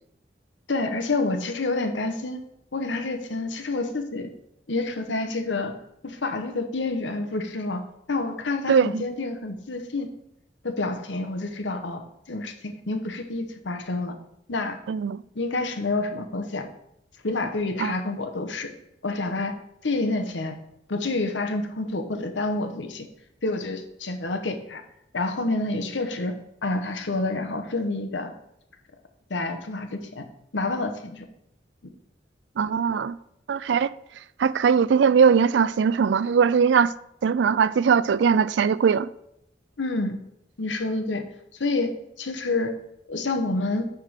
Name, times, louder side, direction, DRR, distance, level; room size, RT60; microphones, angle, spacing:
voice 1, 0.7-2.4 2.7-4.3 4.7-5.7 6.0-10.1 10.6-14.2 14.5-14.8 15.3-16.7 17.2-18.7 19.0-19.5 19.8-20.6 20.9-23.1 23.4-24.8 25.1-28.3 29.3-30.2 30.5-31.3 39.8-40.2 40.6-41.2 41.6-42.7 43.1-43.9, left 2 dB, 90° left, 1.1 m, -28 dB
voice 2, 8.7-9.0 14.9-15.2 17.8-17.9 32.6-33.2 33.5-33.9 34.4-36.9 37.2-39.1, right 6 dB, 80° right, 0.3 m, -20 dB
9.1 x 3.8 x 6.4 m
head